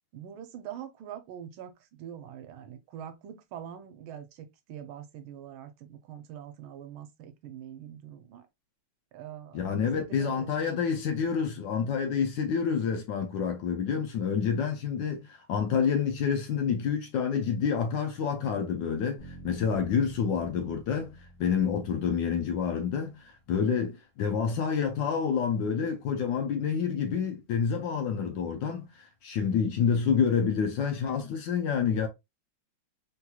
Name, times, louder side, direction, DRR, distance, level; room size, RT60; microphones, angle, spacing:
voice 1, 0.1-8.5 9.1-10.8, right 9 dB, 80° right, 1.4 m, -44 dB
voice 2, 9.5-21.1 21.4-32.1, left 6 dB, 70° left, 1.1 m, -28 dB
sound 1, 19.2-23.3, right 1 dB, 35° left, 1.7 m, -50 dB
3.7 x 2.9 x 2.2 m
omnidirectional pair, 2.3 m